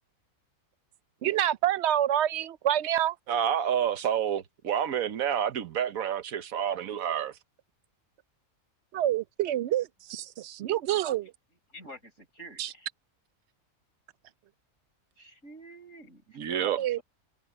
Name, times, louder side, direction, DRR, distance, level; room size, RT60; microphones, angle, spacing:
voice 1, 1.2-3.2 8.9-11.3 12.6-12.7 16.8-17.0, right 12 dB, 65° right, 0.7 m, -27 dB
voice 2, 3.3-7.3 16.4-16.8, right 9 dB, 80° right, 1.4 m, -29 dB
voice 3, 11.7-12.9 15.2-17.0, right 1 dB, 60° left, 6.6 m, -49 dB
omnidirectional pair, 1.4 m